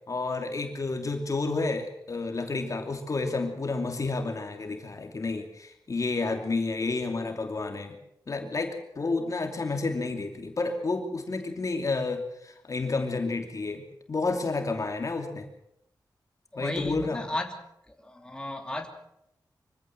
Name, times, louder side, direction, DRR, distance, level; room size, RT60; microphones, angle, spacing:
voice 1, 0.1-8.0 8.3-13.8 14.1-15.5 16.6-17.2, left 3 dB, 45° left, 4 dB, 2.8 m, -30 dB
voice 2, 16.5-17.5 17.9-18.9, left 1 dB, 10° left, 3 dB, 3.0 m, -34 dB
24.5 x 16.0 x 7.7 m, 0.77 s
wide cardioid pair, 125°, 8 cm